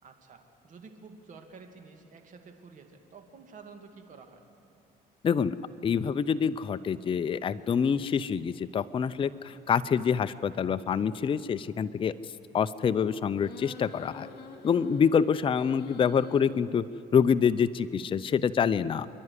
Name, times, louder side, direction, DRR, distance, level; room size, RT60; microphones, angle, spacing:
voice 1, 0.0-4.4 15.6-15.7, right 4 dB, 50° right, 5 dB, 2.4 m, -50 dB
voice 2, 5.2-5.6 5.8-12.1 12.5-14.3 14.6-16.8 17.1-19.1, left 7 dB, 30° left, 12 dB, 0.5 m, -26 dB
sound 1, 13.4-16.4, left 5 dB, 65° left, 2.2 m, -47 dB
27.0 x 11.0 x 9.8 m, 2.5 s
cardioid pair, 110°, 17 cm